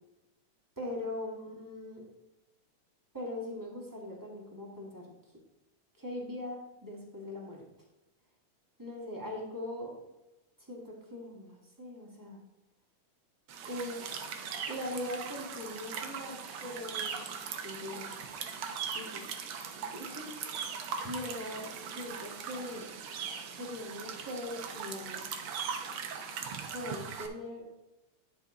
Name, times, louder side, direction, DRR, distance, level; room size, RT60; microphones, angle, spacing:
voice 1, 0.8-2.1 3.1-5.1 5.9-7.6 8.8-10.0 10.6-12.4 13.6-14.2 14.7-17.3 17.6-18.1 18.5-18.6 18.9-19.4 19.7-20.7 21.0-22.9 23.5-25.2 26.7-27.6, left 1 dB, 10° right, -3 dB, 1.1 m, -41 dB
sound 1, 13.5-27.3, right 6 dB, 75° right, 1.2 m, -40 dB
10.5 x 5.4 x 3.8 m, 1.0 s
omnidirectional pair, 3.5 m